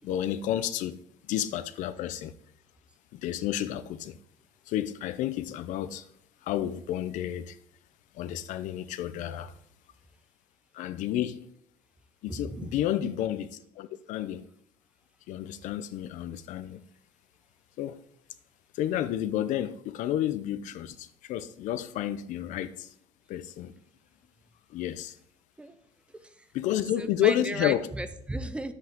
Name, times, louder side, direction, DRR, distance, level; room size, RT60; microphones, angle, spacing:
voice 1, 0.0-1.0 1.3-2.3 3.1-4.2 4.7-6.0 6.5-7.6 8.2-9.5 10.7-11.4 12.2-14.5 15.3-16.8 17.8-18.0 18.7-22.9 23.3-23.7 24.7-25.1 26.5-27.8, left 11 dB, 80° left, 0.7 m, -31 dB
voice 2, 9.1-9.5 12.3-12.8 24.9-25.0 25.6-25.8 26.1-26.5 27.0-28.7, right 2 dB, 10° right, 0.6 m, -36 dB
10.5 x 8.0 x 3.7 m
cardioid pair, 155°, 13 cm